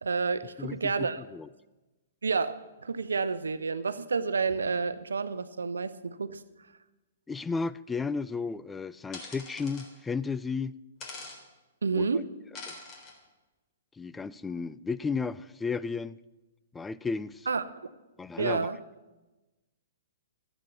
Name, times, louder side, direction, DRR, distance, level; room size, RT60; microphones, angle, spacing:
voice 1, 0.0-1.2 2.2-6.4 11.8-12.3 17.5-17.6 18.4-18.8, right 4 dB, 80° right, 13 dB, 0.8 m, -29 dB
voice 2, 0.6-1.5 7.3-10.8 11.9-12.1 12.7-12.8 14.0-16.2 16.7-17.5 18.2-18.7, left 4 dB, 10° left, 17 dB, 0.3 m, -33 dB
sound 1, 9.1-9.9 11.0-11.4 12.5-13.1, left 3 dB, 30° left, 3.5 m, -43 dB
13.5 x 8.4 x 7.2 m, 1.1 s
hypercardioid pair, 120°, 0 cm